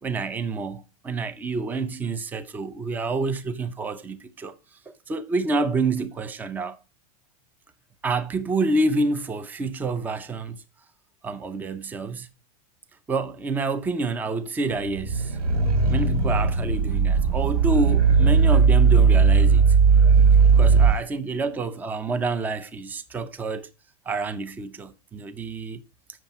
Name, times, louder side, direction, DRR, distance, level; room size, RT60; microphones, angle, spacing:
voice 1, 0.0-4.5 4.9-6.8 8.0-10.6 11.2-12.3 13.1-15.4 15.9-19.6 20.6-23.7 24.1-25.8, right 3 dB, 10° right, 0.6 m, -28 dB
sound 1, 14.9-21.0, right 5 dB, 85° right, 1.9 m, -18 dB
7.6 x 6.9 x 5.3 m
supercardioid pair, 165°, 19 cm